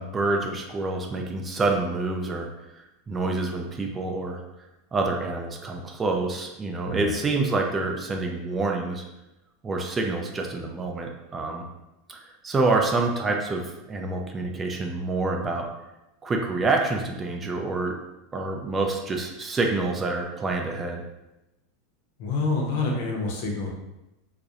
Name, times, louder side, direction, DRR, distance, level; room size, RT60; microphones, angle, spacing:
voice 1, 0.0-2.5 3.1-4.4 4.9-9.0 9.6-11.7 12.1-15.7 16.2-18.0 18.3-21.0, right 3 dB, 20° right, 2 dB, 0.4 m, -27 dB
voice 2, 22.2-23.7, left 3 dB, 70° left, 0 dB, 0.6 m, -27 dB
2.3 x 2.0 x 2.7 m, 0.95 s
hypercardioid pair, 110°, 0 cm